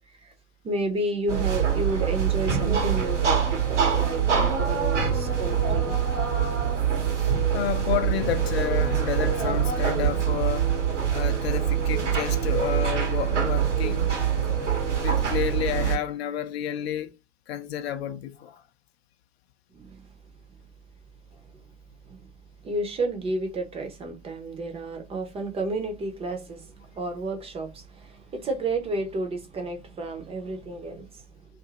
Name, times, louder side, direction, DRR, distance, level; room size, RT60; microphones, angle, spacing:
voice 1, 0.6-5.9 19.7-20.1 21.3-21.6 22.0-22.3 22.6-31.2, right 2 dB, 15° right, 0.5 m, -31 dB
sound 1, 1.3-16.0, right 8 dB, 75° right, 0.9 m, -24 dB
voice 2, 7.5-10.7 11.1-17.1 17.5-18.6, left 10 dB, 60° left, 0.5 m, -31 dB
2.6 x 2.5 x 2.7 m
figure-of-eight pair, 80°, 36 cm